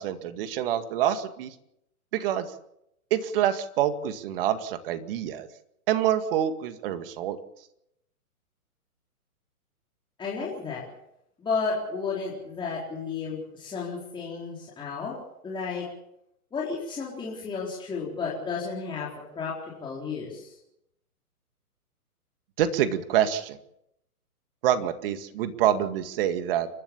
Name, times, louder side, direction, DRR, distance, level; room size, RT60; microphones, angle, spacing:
voice 1, 0.0-1.5 2.1-2.5 3.1-5.5 5.9-7.4 22.6-23.6 24.6-26.7, right 10 dB, 40° right, 10 dB, 2.1 m, -26 dB
voice 2, 10.2-10.8 11.4-15.1 15.4-15.9 16.5-20.6, left 5 dB, 10° left, -4 dB, 4.3 m, -32 dB
29.5 x 12.5 x 7.2 m, 0.80 s
hypercardioid pair, 140°, 45 cm